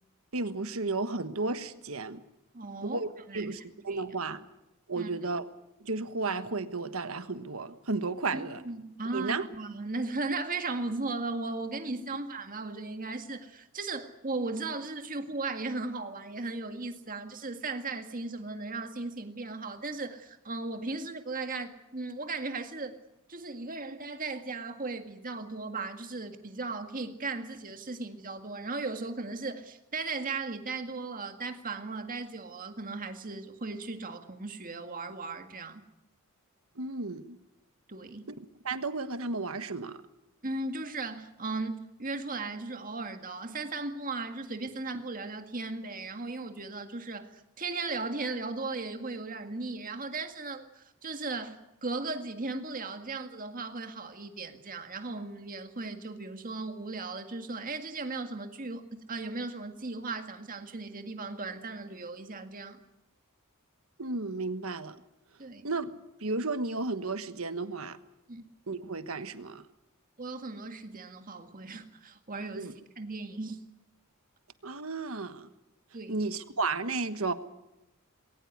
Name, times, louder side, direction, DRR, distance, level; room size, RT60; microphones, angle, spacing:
voice 1, 0.3-2.2 2.8-3.1 3.3-4.5 4.9-5.5 5.8-8.6 9.1-9.5 36.8-37.4 38.6-40.0 64.0-65.0 65.6-65.9 66.2-68.0 68.7-69.6 72.6-72.7 74.6-75.5 76.1-77.3, right 3 dB, 70° right, 11 dB, 1.4 m, -33 dB
voice 2, 2.5-3.0 3.3-3.5 3.9-4.0 5.0-5.1 8.3-22.9 23.3-35.8 37.9-38.3 40.4-62.8 65.4-65.7 68.3-68.5 70.2-73.6 75.9-76.2, right 3 dB, 40° right, 7 dB, 1.9 m, -37 dB
21.0 x 18.0 x 9.5 m, 0.91 s
head